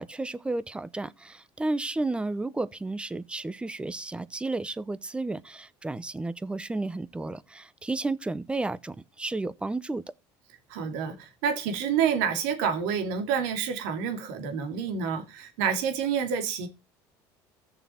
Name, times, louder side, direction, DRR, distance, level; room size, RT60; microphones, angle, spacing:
voice 1, 0.0-10.0, right 2 dB, 10° right, 0.8 m, -32 dB
voice 2, 10.7-16.7, right 7 dB, 85° right, 2.6 m, -28 dB
15.0 x 6.9 x 4.4 m
supercardioid pair, 105°, 9 cm